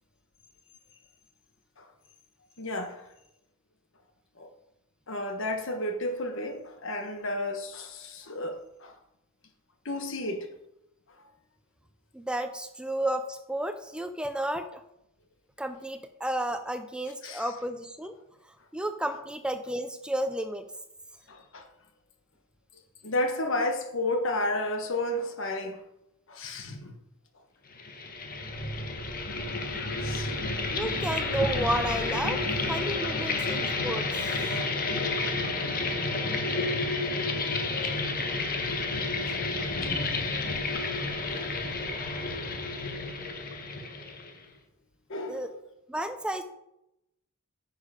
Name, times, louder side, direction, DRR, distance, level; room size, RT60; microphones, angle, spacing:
voice 1, 2.6-3.0 4.4-4.5 5.1-8.9 9.8-10.5 17.2-17.5 21.3-21.7 23.0-25.8 26.3-26.9 30.0-30.6 33.0-33.3 34.2-34.8 39.2-39.4 41.3-41.6 45.1-45.5, left 1 dB, 65° left, 1.3 m, -32 dB
voice 2, 12.1-14.8 15.6-18.2 18.7-20.7 30.7-32.4 32.7-34.4 45.3-45.5 45.9-46.4, right 1 dB, 5° right, 0.5 m, -32 dB
sound 1, 27.7-44.4, left 3 dB, 45° left, 1.2 m, -30 dB
9.9 x 6.5 x 5.0 m
head